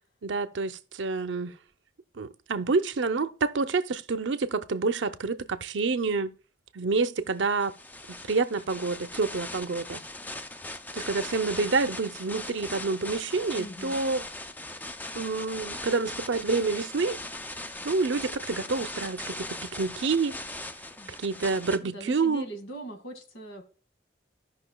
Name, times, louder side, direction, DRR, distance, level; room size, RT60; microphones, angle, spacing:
voice 1, 0.2-1.6 2.2-6.3 6.7-7.7 8.1-10.0 10.9-14.2 15.1-17.2 17.8-20.4 21.2-22.4, right 4 dB, 75° right, 0.6 m, -28 dB
sound 1, 7.5-21.8, left 2 dB, 10° left, 0.4 m, -39 dB
voice 2, 13.6-14.0 21.0-21.2 21.8-23.6, right 1 dB, 90° left, 2.0 m, -41 dB
15.0 x 5.6 x 2.3 m
head